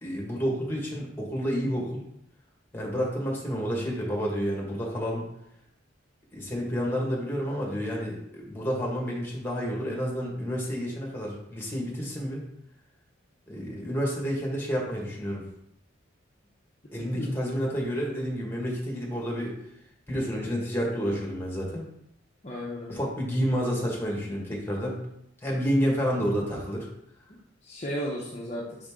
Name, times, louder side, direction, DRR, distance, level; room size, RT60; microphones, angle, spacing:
voice 1, 0.0-2.0 2.7-5.3 6.3-12.4 13.5-15.4 16.9-19.5 20.1-21.8 22.9-25.0 25.4-26.9, equal, 10° left, -2 dB, 1.6 m, -29 dB
voice 2, 22.4-23.1 27.3-28.9, equal, 35° left, -4 dB, 0.8 m, -35 dB
5.4 x 5.2 x 3.7 m, 0.78 s
head